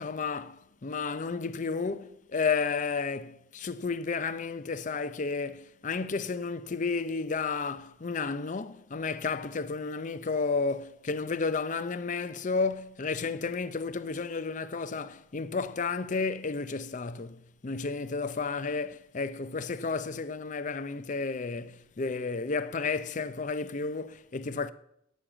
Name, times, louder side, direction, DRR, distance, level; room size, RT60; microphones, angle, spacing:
voice 1, 0.0-24.7, left 4 dB, 40° left, 0.5 m, -32 dB
10.5 x 6.4 x 8.7 m
head